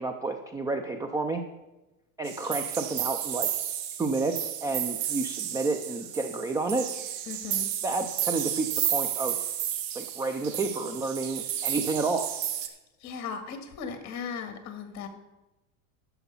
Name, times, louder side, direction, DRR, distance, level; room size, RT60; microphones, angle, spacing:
voice 1, 0.0-1.4 2.2-3.5 4.0-6.9 7.8-9.4 9.9-12.4, right 3 dB, 10° right, 6 dB, 0.4 m, -30 dB
sound 1, 2.2-12.7, right 11 dB, 55° right, 1.2 m, -32 dB
voice 2, 7.3-7.7 13.0-15.1, left 6 dB, 40° left, 7 dB, 1.9 m, -37 dB
11.5 x 7.1 x 5.5 m, 1.0 s
supercardioid pair, 125°, 43 cm